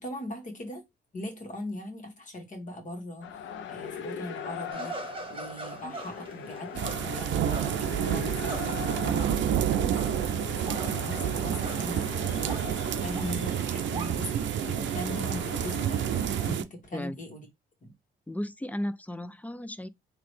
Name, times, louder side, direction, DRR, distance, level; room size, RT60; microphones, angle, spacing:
voice 1, 0.0-0.8 1.1-3.3 3.7-8.7 9.0-10.1 10.6-16.0 16.5-17.4 17.8-17.9, left 1 dB, 40° left, 1.7 m, -40 dB
sound 1, 3.2-16.5, left 7 dB, 75° left, 0.7 m, -41 dB
sound 2, 4.7-10.3 10.6-12.1 12.4-14.1, right 3 dB, 25° right, 0.9 m, -42 dB
sound 3, 6.7-16.6, right 10 dB, 70° right, 0.5 m, -29 dB
voice 2, 18.3-19.9, left 1 dB, 10° left, 0.3 m, -35 dB
3.9 x 2.8 x 3.3 m
cardioid pair, 90°, 20 cm